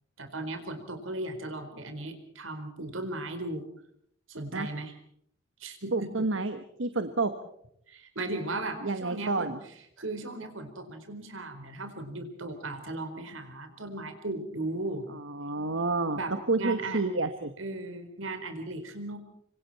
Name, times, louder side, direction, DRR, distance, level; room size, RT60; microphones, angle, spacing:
voice 1, 0.2-3.6 4.3-4.9 5.6-6.3 7.9-9.5 10.0-15.1 16.1-17.0 17.6-19.2, right 2 dB, 85° right, 8 dB, 4.4 m, -36 dB
voice 2, 5.9-7.3 8.8-9.6 15.1-17.5, right 3 dB, 70° right, 8 dB, 1.4 m, -29 dB
26.0 x 25.5 x 4.3 m, 0.70 s
head